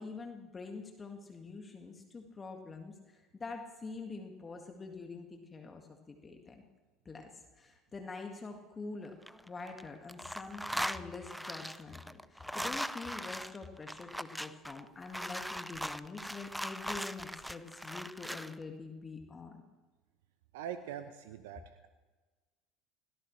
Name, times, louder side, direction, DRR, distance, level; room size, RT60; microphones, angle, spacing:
voice 1, 0.0-6.6 7.1-7.3 7.6-9.2 9.4-19.6, left 4 dB, 25° left, 3 dB, 1.9 m, -45 dB
sound 1, 9.0-9.8 10.1-18.5, equal, ahead, 0.6 m, -40 dB
voice 2, 20.5-21.9, right 9 dB, 75° right, 10 dB, 0.8 m, -43 dB
24.5 x 17.5 x 3.3 m, 1.3 s
hypercardioid pair, 70°, 0 cm